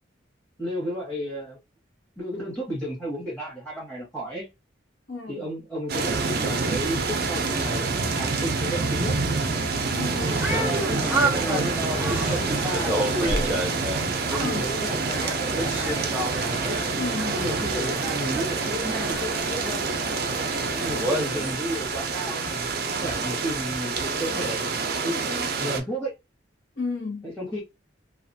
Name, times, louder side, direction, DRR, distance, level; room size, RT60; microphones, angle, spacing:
voice 1, 0.6-1.6 2.2-4.5 5.3-9.2 10.4-13.6 14.3-16.1 16.4-16.8 17.3-19.8 20.7-26.1 27.2-27.6, equal, 10° left, 1.1 m, -33 dB
voice 2, 5.1-5.4 9.9-10.3 14.3-14.6 17.0-17.3 26.8-27.3, left 4 dB, 65° left, 0.8 m, -32 dB
sound 1, 5.9-25.8, right 4 dB, 55° right, 0.5 m, -27 dB
sound 2, 10.2-21.5, right 1 dB, 10° right, 0.6 m, -30 dB
2.4 x 2.3 x 2.6 m
head